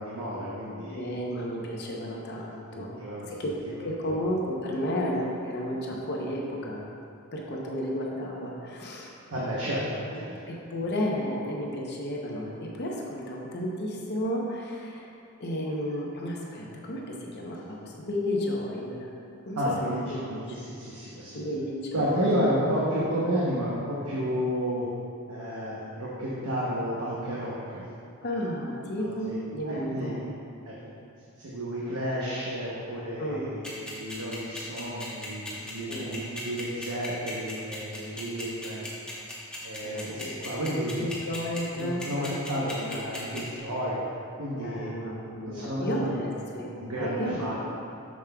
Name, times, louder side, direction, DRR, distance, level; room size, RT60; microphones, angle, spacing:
voice 1, 0.0-1.2 2.7-3.4 3.7-4.2 9.3-9.9 10.2-10.4 19.6-21.4 21.9-24.9 25.3-27.8 29.0-29.4 29.7-30.2 30.6-30.9 31.4-38.8 39.6-41.0 41.8-45.0 45.4-46.3 46.8-47.6, equal, 85° right, -7 dB, 0.9 m, -31 dB
voice 2, 0.9-3.0 3.3-6.8 7.3-9.1 10.1-10.2 10.5-15.1 15.4-19.1 19.5-20.4 21.3-22.3 28.2-30.2 33.2-33.5 35.9-36.2 39.8-40.4 41.0-42.3 42.9-43.0 43.3-43.5 44.6-46.7 47.0-47.5, equal, 50° left, -2 dB, 0.7 m, -32 dB
sound 1, 33.6-43.4, left 2 dB, 5° left, 1.0 m, -37 dB
7.0 x 6.3 x 2.3 m, 2.5 s
head